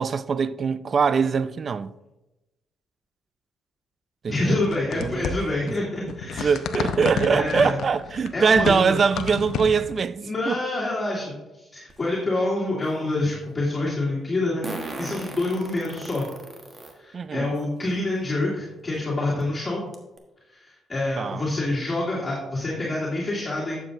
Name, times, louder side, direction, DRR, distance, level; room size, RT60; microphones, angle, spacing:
voice 1, 0.0-1.9 4.2-4.7 5.0-5.3 6.4-10.6 17.1-17.5 21.2-21.5, right 5 dB, 45° right, 0.3 m, -23 dB
sound 1, 4.3-10.0, left 6 dB, 70° left, 0.7 m, -31 dB
voice 2, 4.3-6.5 7.3-7.8 8.3-8.9 10.2-14.7 15.0-16.3 17.0-19.8 20.6-23.8, left 2 dB, 25° left, 2.6 m, -27 dB
Fart, 11.9-12.0 14.6-16.9 17.6-17.7 18.9-19.0 19.4-19.5 19.9-20.2, right 2 dB, 30° right, 1.3 m, -36 dB
11.5 x 7.2 x 2.6 m
cardioid pair, 90°, 0 cm